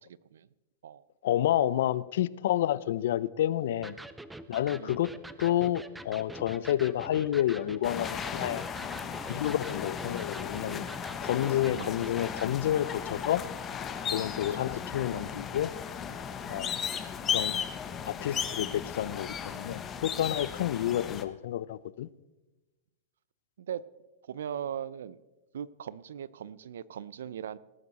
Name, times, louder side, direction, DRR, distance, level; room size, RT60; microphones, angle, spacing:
voice 1, 0.0-0.5 0.8-1.0 4.8-5.0 11.7-12.0 14.5-14.6 15.1-15.3 16.5-16.8 23.6-23.8 24.2-25.2 25.5-27.6, right 9 dB, 85° right, 20 dB, 0.5 m, -39 dB
voice 2, 1.2-4.0 4.5-5.1 5.4-8.7 9.3-10.8 11.2-13.4 14.1-15.7 16.5-16.8 17.3-17.6 18.1-22.1, left 12 dB, 70° left, 20 dB, 0.5 m, -29 dB
Electric guitar, 3.8-12.6, right 2 dB, 5° right, 0.5 m, -45 dB
sound 1, 7.8-21.2, left 7 dB, 20° left, 0.9 m, -36 dB
18.5 x 9.5 x 4.1 m, 1.1 s
hypercardioid pair, 140°, 0 cm